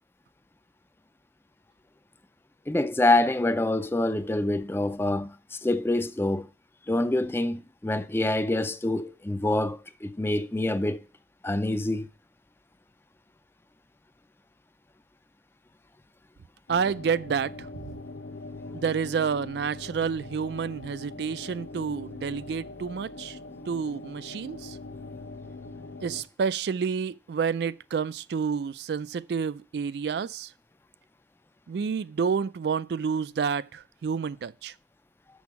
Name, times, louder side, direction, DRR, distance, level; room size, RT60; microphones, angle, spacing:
voice 1, 2.7-6.5 6.9-11.0 11.4-12.1, left 2 dB, 10° left, 0.3 m, -26 dB
sound 1, 16.7-26.2, left 2 dB, 90° left, 0.9 m, -42 dB
voice 2, 16.7-18.0 18.7-23.4 23.7-24.8 26.0-30.5 31.7-34.7, right 6 dB, 65° right, 0.3 m, -29 dB
6.3 x 6.0 x 5.7 m
head